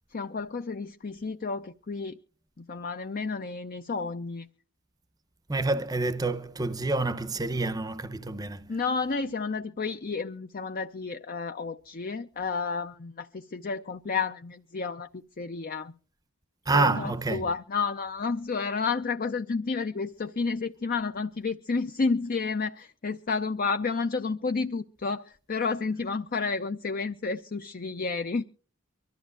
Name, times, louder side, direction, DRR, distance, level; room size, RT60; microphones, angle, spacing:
voice 1, 0.1-2.2 2.6-4.5 8.7-15.1 15.4-15.9 16.7-28.4, left 4 dB, 40° left, 0.5 m, -31 dB
voice 2, 5.5-8.7 16.7-17.5, right 3 dB, 15° right, 0.7 m, -28 dB
24.5 x 13.5 x 2.5 m
head